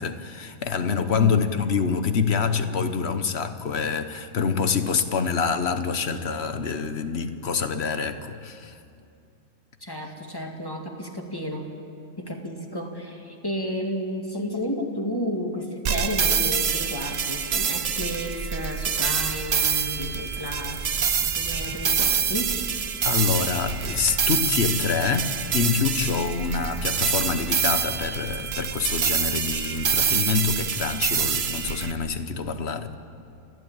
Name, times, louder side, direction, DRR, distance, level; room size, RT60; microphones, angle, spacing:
voice 1, 0.0-8.8 23.0-32.9, left 5 dB, 50° left, 10 dB, 1.3 m, -26 dB
voice 2, 9.8-11.7 12.2-20.9 21.2-22.6, equal, 15° left, 1 dB, 2.3 m, -32 dB
sound 1, 15.9-31.9, right 7 dB, 50° right, 1.0 m, -26 dB
sound 2, 19.1-24.4, right 1 dB, 5° right, 0.6 m, -42 dB
30.0 x 12.5 x 8.9 m, 2.5 s
omnidirectional pair, 1.5 m